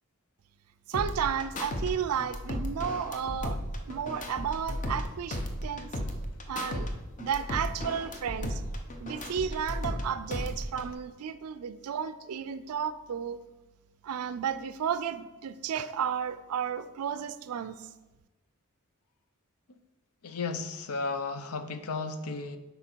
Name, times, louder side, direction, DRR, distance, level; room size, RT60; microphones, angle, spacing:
sound 1, 0.9-1.9 2.2-5.1 5.3-6.9 7.2-10.0 10.3-10.9, left 1 dB, 35° left, 0.8 m, -35 dB
voice 1, 0.9-3.6 3.9-5.9 6.5-6.9 7.2-8.6 9.0-13.4 14.0-17.9, right 8 dB, 90° right, 12 dB, 0.4 m, -33 dB
voice 2, 20.2-22.6, left 4 dB, 90° left, 9 dB, 0.7 m, -34 dB
7.9 x 5.5 x 4.5 m, 1.1 s
head